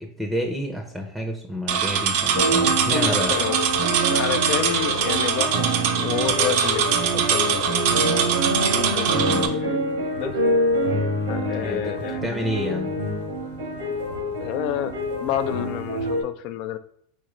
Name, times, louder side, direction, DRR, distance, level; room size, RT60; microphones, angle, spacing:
voice 1, 0.0-3.3 9.1-9.5 11.6-12.9, equal, 5° right, 3 dB, 0.6 m, -29 dB
sound 1, 1.7-9.5, right 7 dB, 65° right, 0.5 m, -23 dB
sound 2, 2.3-16.2, right 1 dB, 90° right, 1.1 m, -26 dB
voice 2, 2.9-3.6 4.1-7.7 8.7-9.8 10.2-10.4 11.3-12.3 14.4-14.9 15.2-16.8, left 11 dB, 55° left, 11 dB, 0.4 m, -29 dB
4.3 x 3.8 x 3.0 m, 0.65 s
hypercardioid pair, 105°, 0 cm